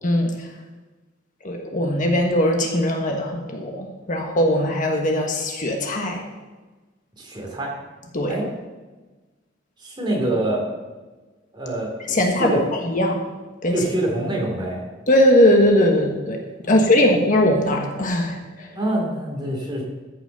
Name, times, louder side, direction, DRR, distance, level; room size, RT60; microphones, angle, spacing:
voice 1, 0.0-0.5 1.4-6.2 8.1-8.3 12.1-13.2 13.6-13.8 15.1-16.4 16.7-18.7, left 1 dB, 45° left, 2 dB, 1.4 m, -20 dB
voice 2, 7.2-7.7 8.3-8.5 9.8-10.7 11.5-12.6 13.7-14.8 16.6-16.8 18.7-19.8, right 1 dB, 25° right, -1 dB, 3.2 m, -25 dB
14.0 x 6.0 x 6.8 m, 1.2 s
head